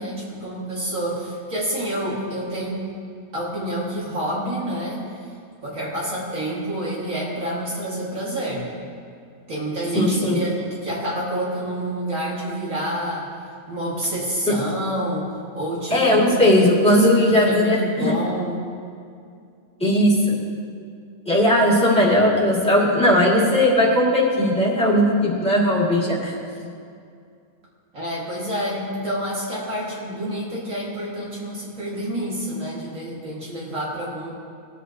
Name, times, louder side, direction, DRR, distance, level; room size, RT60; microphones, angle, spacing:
voice 1, 0.0-2.9 3.3-5.0 5.6-8.7 9.5-13.3 13.7-18.6 27.9-34.3, right 1 dB, 65° right, -6 dB, 2.6 m, -28 dB
voice 2, 9.9-10.4 14.5-14.6 15.9-18.1 19.8-20.4 21.3-26.3, left 1 dB, 5° left, -6 dB, 2.4 m, -18 dB
18.5 x 8.3 x 2.9 m, 2.4 s
omnidirectional pair, 1.5 m